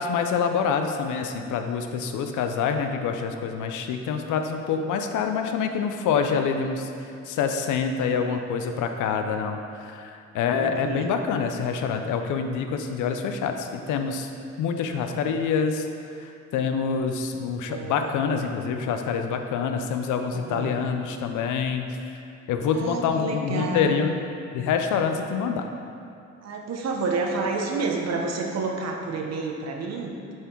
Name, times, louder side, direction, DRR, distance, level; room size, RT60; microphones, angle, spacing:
voice 1, 0.0-6.9 7.3-14.3 14.6-15.9 16.2-22.1 22.5-24.2 24.5-25.7, left 6 dB, 80° left, 6 dB, 0.6 m, -26 dB
voice 2, 10.5-11.1 15.1-15.3 17.7-18.1 20.3-20.7 22.7-24.1 26.4-30.2, right 3 dB, 60° right, 1 dB, 0.9 m, -29 dB
7.7 x 3.5 x 4.5 m, 2.5 s
cardioid pair, 90°, 30 cm